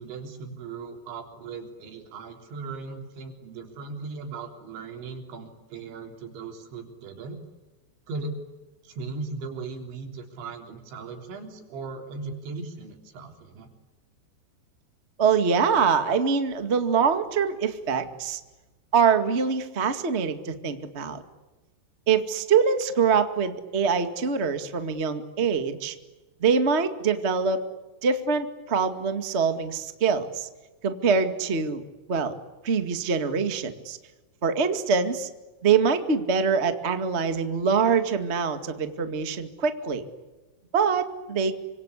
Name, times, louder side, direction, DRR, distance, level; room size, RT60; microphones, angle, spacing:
voice 1, 0.0-7.4 8.1-8.4 8.8-13.7, right 4 dB, 90° right, 4 dB, 5.9 m, -38 dB
voice 2, 15.2-18.4 18.9-21.2 22.1-25.9 26.4-27.6 28.0-30.5 30.8-31.8 32.1-32.3 32.6-34.0 34.4-35.3 35.6-40.0 40.7-41.6, right 6 dB, 75° right, 8 dB, 0.6 m, -24 dB
27.5 x 26.0 x 8.3 m, 1.1 s
omnidirectional pair, 5.1 m